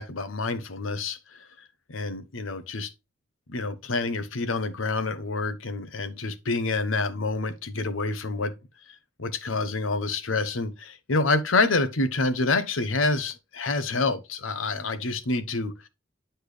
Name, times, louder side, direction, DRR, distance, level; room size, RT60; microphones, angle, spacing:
voice 1, 0.0-1.5 1.9-2.9 3.5-8.5 9.2-15.9, left 3 dB, 85° left, 0.9 m, -27 dB
9.8 x 4.4 x 3.3 m
head